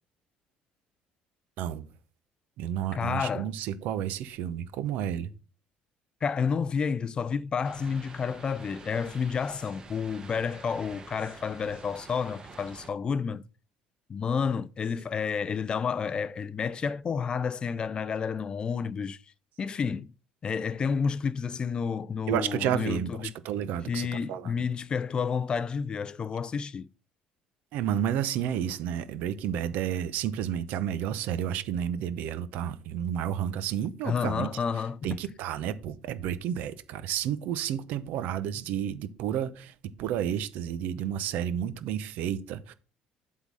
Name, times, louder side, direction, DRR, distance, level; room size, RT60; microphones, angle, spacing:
voice 1, 1.6-1.9 2.6-5.3 22.3-24.5 27.7-34.5 35.0-39.7 40.0-42.7, right 10 dB, 70° right, 0.8 m, -31 dB
voice 2, 2.9-3.5 6.2-13.4 14.1-19.2 19.6-20.1 20.4-23.3 23.9-26.9 34.0-35.2, left 6 dB, 30° left, 0.4 m, -30 dB
sound 1, 7.6-12.9, right 3 dB, 25° right, 1.2 m, -48 dB
8.0 x 3.8 x 6.2 m
cardioid pair, 115°, 3 cm